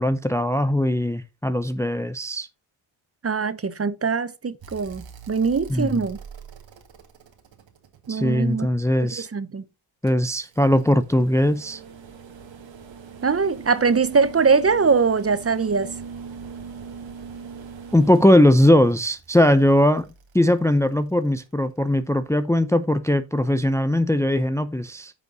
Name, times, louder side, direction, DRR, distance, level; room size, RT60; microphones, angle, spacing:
voice 1, 0.0-2.5 5.7-6.0 8.1-9.3 10.0-11.8 17.9-20.1 20.3-25.1, left 1 dB, 5° left, 0.6 m, -20 dB
voice 2, 3.2-6.2 8.1-8.7 9.2-9.6 13.2-15.9, right 5 dB, 30° right, 0.9 m, -22 dB
sound 1, 4.6-8.8 10.1-21.3 22.8-22.9, right 6 dB, 65° right, 2.1 m, -42 dB
9.5 x 5.3 x 4.0 m
cardioid pair, 65°, 49 cm